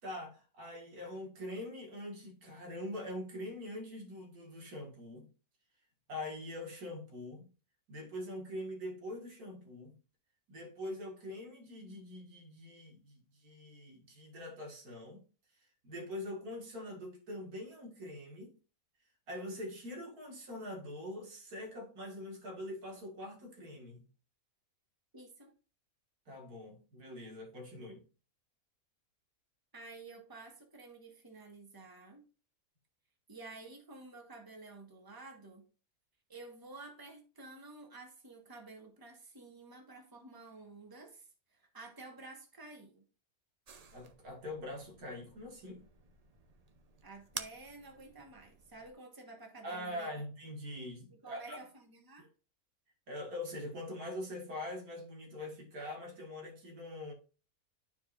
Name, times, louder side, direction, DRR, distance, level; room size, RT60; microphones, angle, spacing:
voice 1, 0.0-5.3 6.1-7.5 7.9-9.9 10.5-15.2 15.8-18.5 19.3-24.1 26.3-28.0 43.9-45.8 49.6-51.6 53.1-57.1, left 1 dB, 90° right, 2.3 m, -43 dB
voice 2, 25.1-25.5 29.7-32.2 33.3-35.6 36.3-43.1 47.0-50.1 51.1-52.3, right 3 dB, 15° right, 1.3 m, -51 dB
sound 1, 43.7-48.9, right 5 dB, 50° right, 0.4 m, -51 dB
12.0 x 4.7 x 2.5 m
omnidirectional pair, 1.5 m